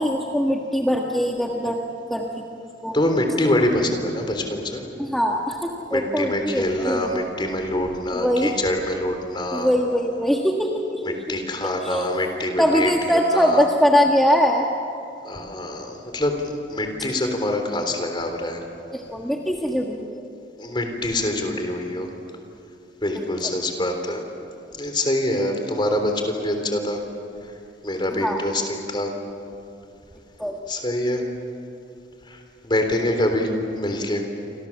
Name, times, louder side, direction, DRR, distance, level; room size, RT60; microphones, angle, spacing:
voice 1, 0.0-1.8 2.1-3.0 5.0-7.3 8.1-8.5 9.5-11.4 11.8-12.1 12.6-14.7 18.9-20.3 23.1-23.2 28.2-28.4 30.4-30.6, equal, ahead, -1 dB, 1.5 m, -22 dB
voice 2, 2.9-4.8 5.9-9.7 11.0-12.9 13.3-13.6 15.2-18.6 20.6-22.1 23.0-24.2 24.8-27.0 27.8-29.1 30.7-31.2 32.3-33.5 33.7-34.2, left 1 dB, 25° left, 4 dB, 3.6 m, -25 dB
29.0 x 25.5 x 7.4 m, 2.6 s
head